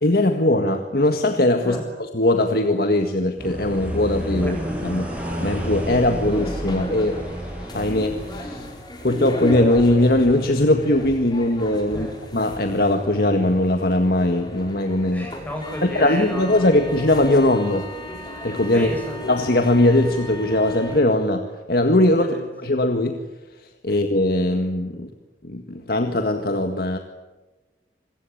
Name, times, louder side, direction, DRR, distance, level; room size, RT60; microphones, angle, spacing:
voice 1, 0.0-1.8 2.1-4.6 4.8-5.1 5.4-7.2 7.7-8.7 9.0-12.1 12.3-15.3 15.8-17.9 18.4-18.9 19.2-22.3 22.6-23.2 23.8-25.1 25.4-27.0, left 1 dB, 55° left, 5 dB, 1.8 m, -20 dB
sound 1, 3.4-8.5, equal, 5° right, 7.8 m, -30 dB
sound 2, 6.3-21.0, equal, 25° left, 4.8 m, -35 dB
voice 2, 15.1-16.7 18.7-19.2 22.1-22.4 23.9-24.0, equal, 10° left, 1 dB, 7.1 m, -32 dB
26.5 x 22.0 x 8.7 m, 1.1 s
head